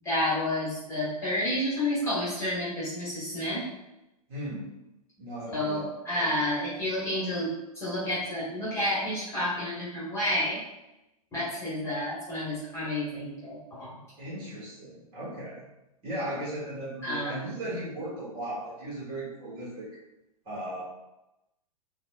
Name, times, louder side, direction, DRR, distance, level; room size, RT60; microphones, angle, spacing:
voice 1, 0.0-3.6 5.5-7.5 7.7-10.6 11.3-14.0 17.0-17.4, left 1 dB, 15° left, -9 dB, 1.2 m, -30 dB
voice 2, 4.3-4.7 5.2-6.3 14.2-15.7 16.0-19.9 20.4-20.8, right 1 dB, 25° right, -6 dB, 1.5 m, -37 dB
4.1 x 2.2 x 2.4 m, 0.94 s
figure-of-eight pair, 105°, 19 cm